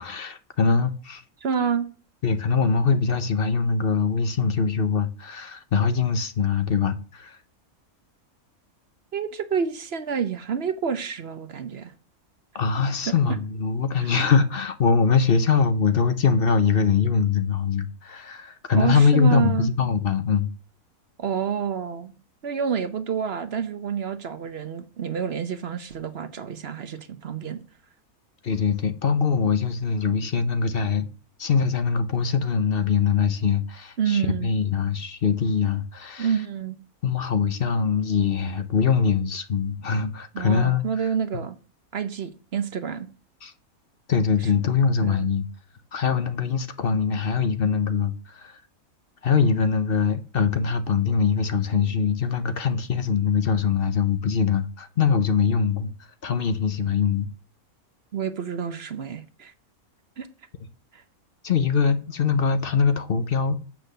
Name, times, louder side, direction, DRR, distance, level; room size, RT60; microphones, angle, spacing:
voice 1, 0.0-1.2 2.2-7.4 12.5-20.5 28.4-31.1 31.4-36.3 37.0-40.8 43.4-43.5 44.1-45.5 45.9-48.6 49.2-55.9 56.2-57.3 61.4-63.6, left 5 dB, 50° left, 0.8 m, -23 dB
voice 2, 1.4-1.9 9.1-11.9 13.0-13.2 14.0-14.1 18.8-19.7 21.2-22.2 22.4-27.6 34.0-34.5 36.2-36.8 40.3-41.6 41.9-43.1 44.4-44.5 45.0-45.3 58.1-59.5 60.2-60.3 60.9-61.0, right 7 dB, 50° right, 0.9 m, -28 dB
8.0 x 6.1 x 6.7 m
omnidirectional pair, 1.5 m